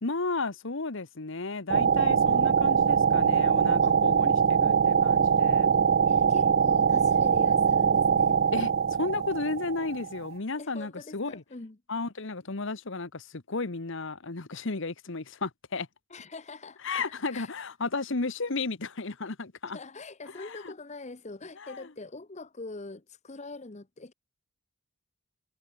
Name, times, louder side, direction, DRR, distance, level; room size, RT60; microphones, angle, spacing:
voice 1, 0.0-5.7 8.5-8.7 9.0-11.4 11.9-15.9 16.8-19.8 20.4-20.7 21.6-21.9, left 3 dB, 60° left, 1.2 m, -33 dB
sound 1, 1.7-10.3, right 6 dB, 45° right, 0.4 m, -23 dB
voice 2, 6.1-8.5 10.6-11.8 16.1-17.5 19.6-24.1, left 3 dB, 30° left, 0.9 m, -43 dB
head